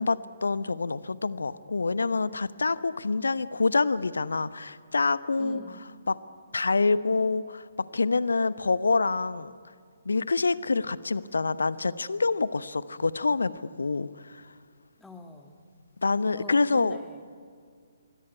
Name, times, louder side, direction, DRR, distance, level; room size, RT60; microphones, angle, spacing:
voice 1, 0.0-5.6 6.1-6.2 6.5-9.5 10.0-14.4 16.0-17.0, left 3 dB, 65° left, 16 dB, 0.9 m, -26 dB
voice 2, 5.4-5.8 15.0-15.6 16.3-17.4, left 2 dB, 5° left, 5 dB, 1.9 m, -44 dB
25.5 x 22.5 x 9.6 m, 2.1 s
figure-of-eight pair, 135°, 0 cm